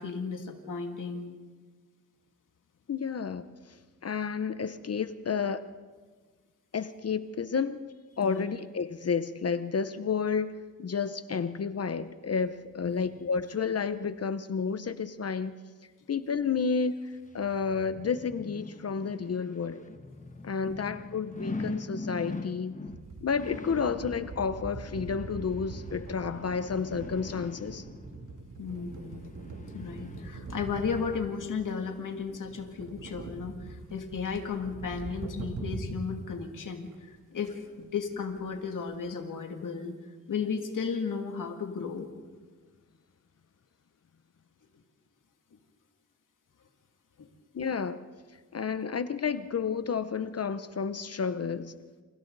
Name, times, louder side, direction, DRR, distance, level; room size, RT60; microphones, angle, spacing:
voice 1, 0.0-1.3 8.2-8.5 12.8-13.1 20.7-20.8 28.6-29.3 29.7-40.0 40.3-42.1 47.2-47.3, left 5 dB, 80° left, 3 dB, 2.5 m, -34 dB
voice 2, 2.9-3.8 4.0-5.6 6.7-7.9 8.2-15.5 16.1-17.0 17.3-19.8 20.4-22.7 23.2-27.8 47.5-48.0 48.5-51.7, left 6 dB, 50° left, 12 dB, 0.8 m, -31 dB
sound 1, 16.9-30.8 31.2-31.3, left 2 dB, 25° left, 1.4 m, -43 dB
sound 2, 22.9-36.1 36.6-36.7 36.9-37.1 37.4-37.5 37.7-39.1, right 3 dB, 70° right, 3.0 m, -43 dB
29.0 x 28.0 x 4.0 m, 1.4 s
wide cardioid pair, 105°, 31 cm